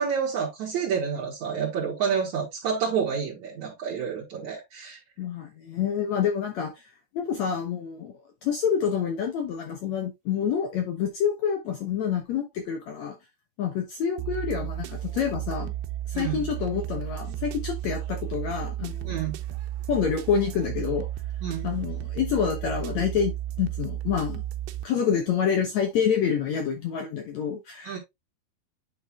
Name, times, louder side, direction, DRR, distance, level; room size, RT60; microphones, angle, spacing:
voice 1, 0.0-5.0 16.1-16.4 19.0-19.4 21.4-21.7 27.8-28.0, right 7 dB, 55° right, 2.6 m, -29 dB
voice 2, 5.2-8.1 8.4-13.1 13.6-15.7 16.1-19.1 19.9-21.1 21.6-23.3 23.6-24.4 24.8-28.0, left 7 dB, 75° left, 1.7 m, -27 dB
sound 1, 14.2-24.9, right 13 dB, 85° right, 2.7 m, -33 dB
9.4 x 5.4 x 2.4 m
omnidirectional pair, 4.5 m